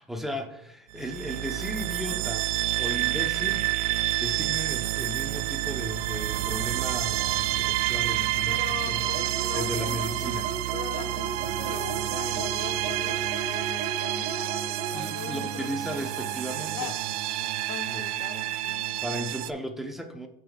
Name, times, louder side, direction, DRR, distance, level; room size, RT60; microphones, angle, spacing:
voice 1, 0.0-2.5 2.8-9.1 9.5-10.5 14.9-16.9 17.9-18.0 19.0-20.3, equal, ahead, 1.0 m, -35 dB
sound 1, 0.9-19.5, right 15 dB, 85° right, 0.4 m, -29 dB
voice 2, 8.5-10.1 10.7-17.0 17.7-19.0, left 9 dB, 75° left, 0.7 m, -41 dB
sound 2, 9.1-15.0, right 4 dB, 55° right, 1.5 m, -36 dB
14.0 x 5.4 x 2.5 m
supercardioid pair, 120°, 18 cm